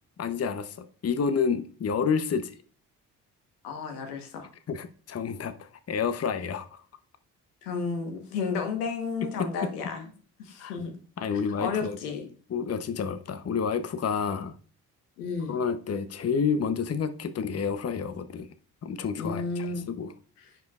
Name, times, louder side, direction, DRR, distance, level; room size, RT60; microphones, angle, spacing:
voice 1, 0.2-2.6 4.7-6.8 9.4-9.7 10.6-10.8 11.2-12.0 12.5-14.5 15.5-18.5 18.8-20.1, left 6 dB, 35° left, 0.8 m, -29 dB
voice 2, 3.6-4.5 7.6-10.1 10.4-10.9 11.6-12.3 15.2-15.6 19.2-19.9, left 5 dB, 85° left, 1.2 m, -32 dB
10.5 x 5.2 x 2.4 m
hypercardioid pair, 40°, 44 cm